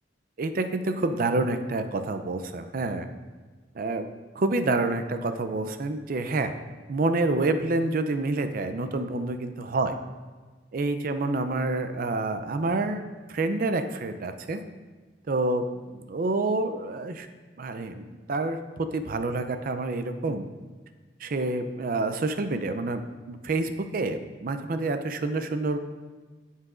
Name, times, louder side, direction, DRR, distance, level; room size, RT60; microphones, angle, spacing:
voice 1, 0.4-3.1 3.7-4.1 4.4-6.5 6.9-10.0 10.7-13.0 13.3-14.6 15.3-17.3 17.6-20.5 21.2-23.0 23.3-25.8, right 2 dB, 50° right, 9 dB, 0.5 m, -28 dB
8.2 x 7.7 x 2.5 m, 1.4 s
head